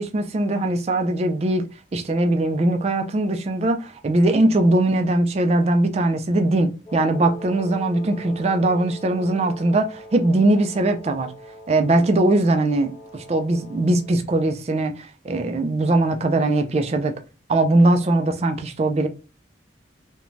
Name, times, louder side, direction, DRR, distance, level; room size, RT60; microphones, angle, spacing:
voice 1, 0.0-1.7 1.9-11.3 11.7-17.2 17.5-19.1, right 2 dB, 35° right, 0.3 m, -20 dB
Wind instrument woodwind instrument, 6.9-14.2, equal, 25° left, 0.5 m, -42 dB
2.5 x 2.1 x 3.0 m
head